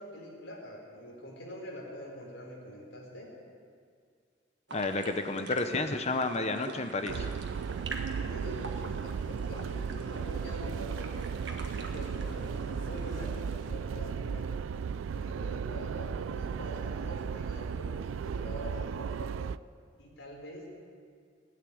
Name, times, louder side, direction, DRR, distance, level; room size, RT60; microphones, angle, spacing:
voice 1, 0.0-3.3 8.1-11.3 11.6-14.5 15.1-19.3 20.0-20.7, equal, 70° left, -2 dB, 4.3 m, -44 dB
voice 2, 4.7-7.3, left 3 dB, 35° left, 8 dB, 0.9 m, -31 dB
sound 1, 4.7-13.7, right 3 dB, 60° right, 1.6 m, -46 dB
sound 2, 7.1-19.6, right 6 dB, 85° right, 0.3 m, -35 dB
17.0 x 9.5 x 8.7 m, 2.2 s
head